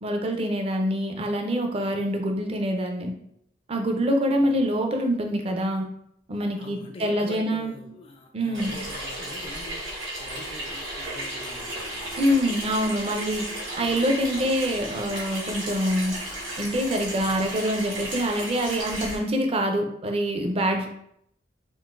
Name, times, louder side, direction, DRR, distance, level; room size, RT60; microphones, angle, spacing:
voice 1, 0.0-3.1 3.7-5.9 6.3-7.8 8.3-8.8 12.2-13.4 13.8-16.1 16.6-20.9, equal, 30° right, 3 dB, 0.4 m, -25 dB
voice 2, 6.6-9.8 10.2-12.1 12.6-12.9, left 2 dB, 30° left, 2 dB, 0.3 m, -44 dB
Water tap faucet / Sink (filling or washing), 8.5-19.2, right 1 dB, 85° right, 1.3 m, -34 dB
3.7 x 2.4 x 2.5 m, 0.72 s
head